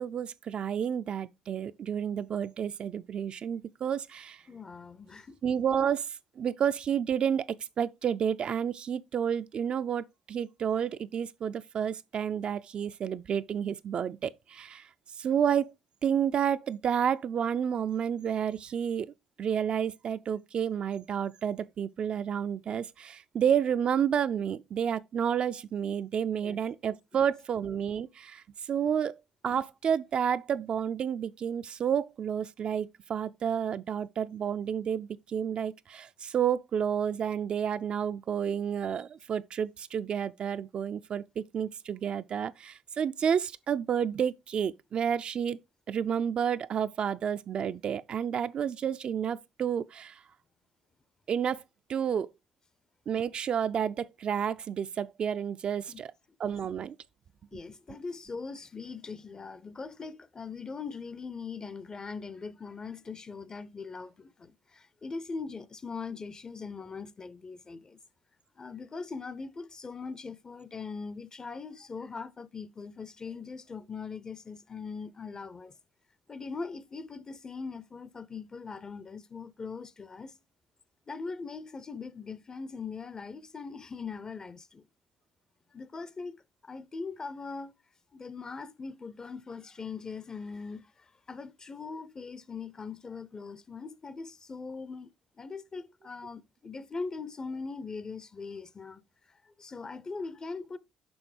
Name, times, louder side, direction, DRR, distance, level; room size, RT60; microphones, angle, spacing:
voice 1, 0.0-4.4 5.4-7.5 7.8-14.9 15.2-15.7 16.0-19.1 19.4-29.2 29.4-45.6 45.9-50.2 51.3-51.6 51.9-52.3 53.1-56.1 56.4-57.0, right 8 dB, 55° right, 0.4 m, -30 dB
voice 2, 4.5-5.4 26.4-26.6 55.9-56.0 57.5-68.0 68.6-75.7 76.3-80.3 81.1-84.9 85.7-87.7 88.1-99.0 99.3-100.8, left 4 dB, 35° left, 0.6 m, -41 dB
6.1 x 5.5 x 3.3 m
hypercardioid pair, 55°, 2 cm